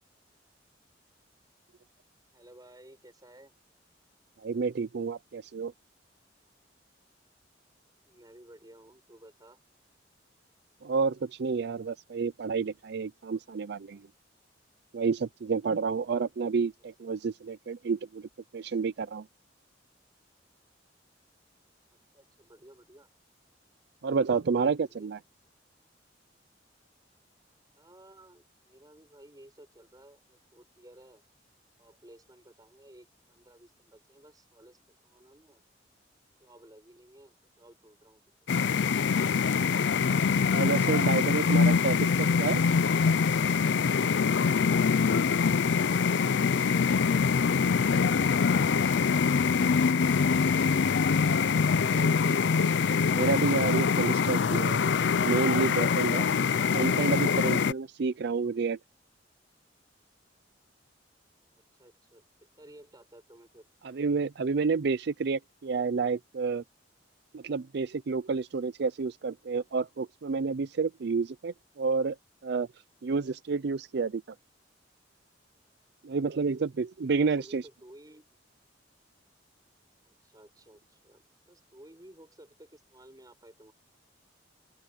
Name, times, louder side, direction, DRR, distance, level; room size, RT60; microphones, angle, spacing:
voice 1, 2.3-3.6 8.1-9.6 17.0-17.1 22.1-23.1 24.8-25.1 27.8-31.2 31.8-35.6 36.4-38.2 45.4-47.6 48.2-50.1 61.8-63.7 77.2-78.3 80.0-83.7, right 1 dB, 20° right, 6.9 m, -55 dB
voice 2, 4.4-5.7 10.8-14.0 14.9-19.2 24.0-25.2 40.5-42.6 51.9-52.7 53.1-54.8 55.2-56.2 56.7-58.8 63.8-66.6 67.3-72.2 72.4-72.7 73.0-74.2 76.0-77.6, right 4 dB, 60° right, 0.5 m, -30 dB
sound 1, 38.5-57.7, left 5 dB, 70° left, 0.5 m, -24 dB
open air
head